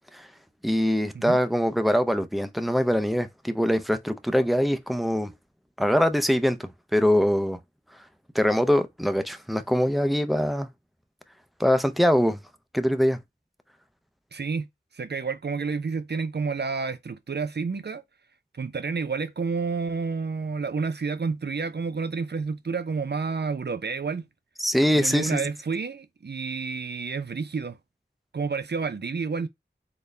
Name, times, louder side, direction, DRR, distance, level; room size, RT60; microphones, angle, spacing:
voice 1, 0.6-5.3 5.8-6.6 6.9-7.6 8.3-10.7 11.6-12.4 12.7-13.2 24.6-25.4, equal, ahead, 0.5 m, -23 dB
voice 2, 14.3-14.7 14.9-18.0 18.6-24.3 25.0-27.8 28.3-29.5, right 5 dB, 60° right, 0.5 m, -30 dB
3.9 x 2.2 x 3.2 m
wide cardioid pair, 45°, 19 cm